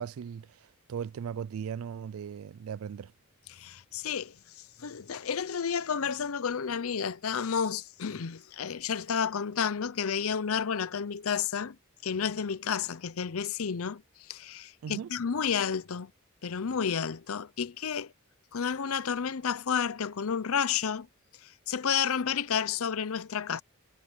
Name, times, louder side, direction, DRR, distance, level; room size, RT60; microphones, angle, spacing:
voice 1, 0.0-3.1 14.8-15.1, right 7 dB, 70° right, 0.3 m, -38 dB
voice 2, 3.5-11.8 12.0-14.0 14.3-16.1 16.4-18.1 18.5-21.1 21.4-23.6, left 7 dB, 75° left, 0.6 m, -31 dB
head